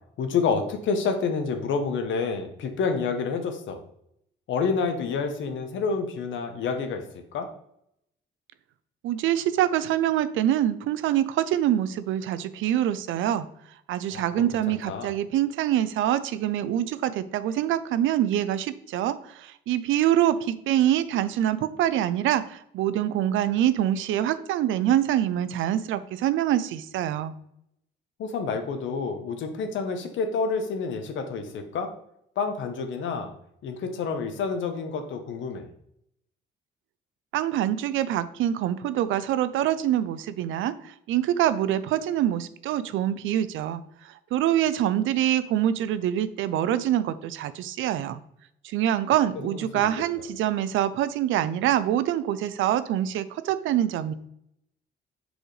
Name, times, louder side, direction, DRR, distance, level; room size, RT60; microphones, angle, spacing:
voice 1, 0.2-3.8 4.5-7.0 7.3-7.5 14.1-15.1 28.2-31.9 32.4-33.3 33.6-35.7 49.4-49.9, left 5 dB, 75° left, 6 dB, 1.0 m, -28 dB
voice 2, 9.0-13.5 13.9-27.3 37.3-48.2 48.6-54.1, right 11 dB, 80° right, 14 dB, 0.5 m, -25 dB
6.3 x 4.9 x 3.2 m, 0.75 s
cardioid pair, 90°, 20 cm